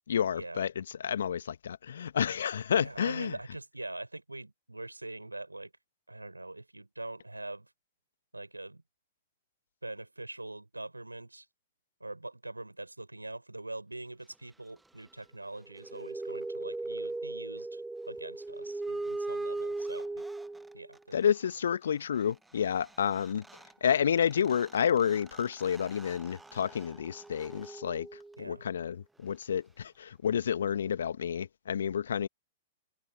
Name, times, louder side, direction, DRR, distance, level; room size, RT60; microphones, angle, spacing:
voice 1, 0.1-3.3 21.1-23.4 23.8-28.1 28.4-32.3, left 8 dB, 65° left, 1.6 m, -30 dB
voice 2, 2.7-5.7 6.1-7.7 8.3-8.8 9.8-11.4 12.0-17.8 18.1-20.2 20.7-21.2 28.4-28.6, right 2 dB, 85° right, 5.0 m, -43 dB
sound 1, 15.6-21.0 22.9-23.0 23.1-28.6, right 2 dB, 5° right, 1.1 m, -39 dB
figure-of-eight pair, 105°, 0 cm